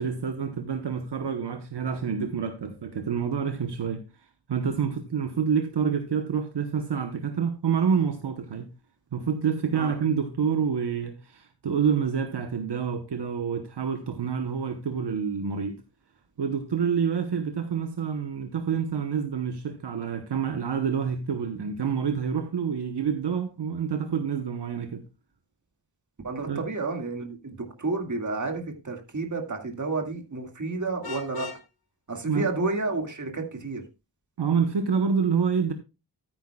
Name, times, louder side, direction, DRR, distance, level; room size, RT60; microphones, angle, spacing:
voice 1, 0.0-4.0 4.5-8.7 9.1-15.7 16.4-25.1 26.5-26.6 32.2-32.5 34.4-35.7, right 6 dB, 75° right, 1.0 m, -27 dB
voice 2, 26.2-31.5 32.1-33.8, right 3 dB, 45° right, 2.1 m, -31 dB
Vehicle horn car horn honking, 31.0-31.7, left 5 dB, 60° left, 1.3 m, -38 dB
14.0 x 9.1 x 2.3 m
wide cardioid pair, 105°, 41 cm